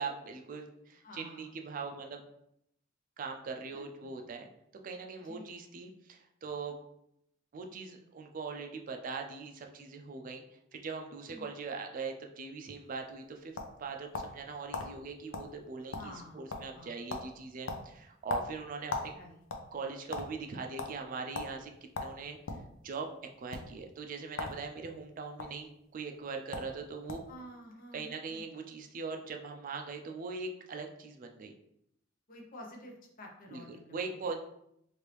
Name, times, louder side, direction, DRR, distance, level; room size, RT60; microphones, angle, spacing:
voice 1, 0.0-2.2 3.2-4.5 4.8-6.8 7.5-10.4 10.7-19.1 19.7-21.7 22.0-22.4 22.8-23.1 23.4-27.2 27.9-31.5 33.5-34.3, right 4 dB, 45° right, 4 dB, 0.3 m, -41 dB
voice 2, 1.0-1.5 3.7-3.9 5.2-5.6 11.3-11.5 15.8-17.0 19.1-19.4 27.3-28.4 32.3-34.4, left 1 dB, 45° left, 0 dB, 0.7 m, -50 dB
sound 1, 13.0-14.4 14.7-14.9 15.3-15.5 15.8-16.2 16.5-16.8 17.1-17.3 17.7-19.1 19.4-20.3 20.8-20.9 21.3-21.5 21.9-22.7 23.4-23.6 24.3-24.6 24.9-25.5 26.2-26.3 26.5-26.7 27.1-27.3, left 3 dB, 85° left, 0.5 m, -38 dB
3.1 x 2.5 x 3.2 m, 0.77 s
head